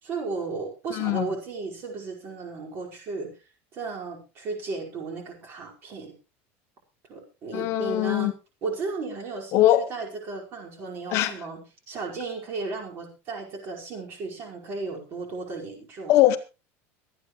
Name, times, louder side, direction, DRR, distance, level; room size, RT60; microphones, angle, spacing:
voice 1, 0.0-3.3 3.7-6.1 7.1-8.3 8.6-16.2, right 4 dB, 35° right, 5.0 m, -35 dB
voice 2, 0.9-1.3 7.5-8.3 9.5-9.8 11.1-11.3 16.1-16.4, left 14 dB, 45° left, 1.1 m, -21 dB
25.0 x 9.3 x 3.2 m
cardioid pair, 165°, 7 cm